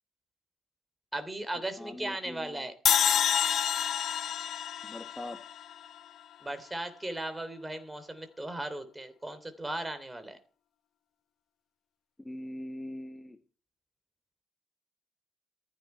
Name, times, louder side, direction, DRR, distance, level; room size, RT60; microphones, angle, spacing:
voice 1, 1.1-2.7 6.4-10.4, right 1 dB, 15° right, 10 dB, 3.2 m, -37 dB
voice 2, 1.8-2.7 4.8-5.4 12.2-13.4, left 1 dB, 15° left, 6 dB, 1.7 m, -42 dB
sound 1, 2.9-6.1, left 9 dB, 65° left, 0.8 m, -28 dB
15.0 x 13.5 x 4.5 m, 0.39 s
cardioid pair, 90°, 0 cm